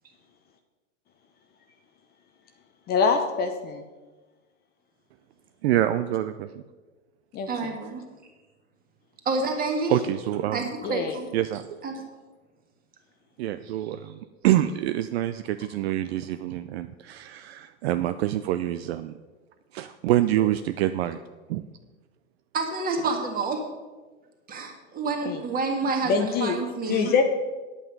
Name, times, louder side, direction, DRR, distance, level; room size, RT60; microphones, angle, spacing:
voice 1, 2.9-3.8 7.3-7.7 10.8-11.1 25.2-25.4 26.0-26.6 26.9-27.2, left 5 dB, 25° left, 6 dB, 0.7 m, -24 dB
voice 2, 5.6-6.5 9.9-10.6 11.3-11.8 13.4-14.1 14.4-19.1 19.7-21.2 21.5-21.6, right 13 dB, 50° right, 10 dB, 0.5 m, -26 dB
voice 3, 7.5-8.0 9.3-10.0 10.5-11.3 11.8-12.0 22.5-23.6 24.5-27.1, right 3 dB, 20° right, 3 dB, 1.8 m, -28 dB
9.7 x 8.4 x 5.3 m, 1.3 s
hypercardioid pair, 125°, 40 cm